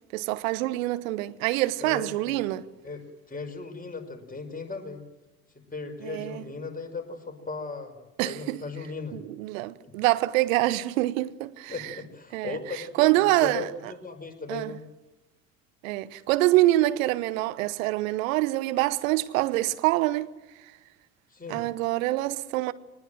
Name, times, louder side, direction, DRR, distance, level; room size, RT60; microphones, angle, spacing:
voice 1, 0.1-2.7 6.0-6.4 8.2-8.6 9.1-11.7 12.3-13.7 14.5-14.8 15.8-20.3 21.5-22.7, right 17 dB, 70° right, 1.1 m, -25 dB
voice 2, 1.8-2.4 2.8-5.0 5.5-8.0 8.2-9.2 9.8-9.9 11.7-13.1 13.4-14.8 21.3-21.6, left 4 dB, 20° left, 5.6 m, -37 dB
23.5 x 20.0 x 7.8 m
figure-of-eight pair, 55°, 42 cm